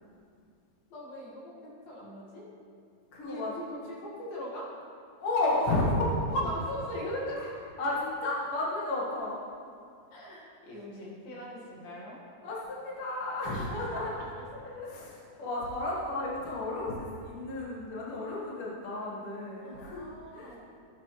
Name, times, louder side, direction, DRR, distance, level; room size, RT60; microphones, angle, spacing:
voice 1, 0.9-2.5 3.2-4.8 6.3-7.7 10.1-12.2 13.4-14.3 19.6-20.6, equal, 65° left, -5 dB, 3.8 m, -39 dB
voice 2, 3.1-3.5 5.2-6.2 7.8-9.4 12.4-14.1 14.6-20.6, left 2 dB, 45° left, -5 dB, 2.1 m, -32 dB
15.0 x 9.4 x 3.3 m, 2.4 s
omnidirectional pair, 4.6 m